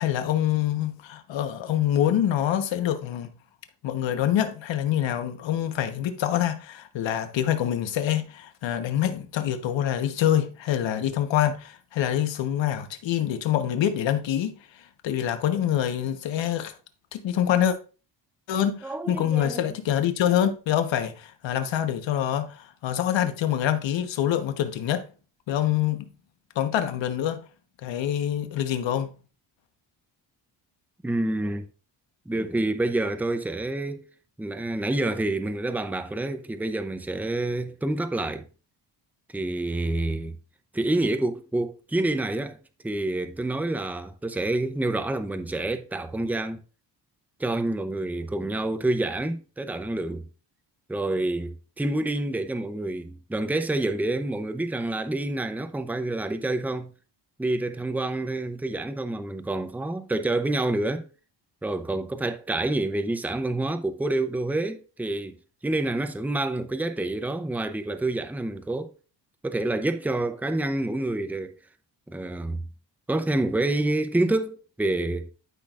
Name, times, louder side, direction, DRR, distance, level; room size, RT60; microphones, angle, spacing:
voice 1, 0.0-3.3 3.8-16.7 17.1-17.8 18.5-25.0 25.5-26.1 26.5-27.4 27.8-29.1, left 10 dB, 85° left, 1.2 m, -25 dB
voice 2, 18.8-19.6 31.0-31.7 32.3-34.1 34.4-38.5 39.3-40.3 40.7-42.6 42.8-46.6 47.4-50.3 50.9-56.9 57.4-61.1 61.6-65.4 65.6-68.9 69.4-71.6 72.1-72.6 73.1-75.3, right 2 dB, 5° right, 0.7 m, -28 dB
12.0 x 5.9 x 2.5 m
cardioid pair, 110°, 44 cm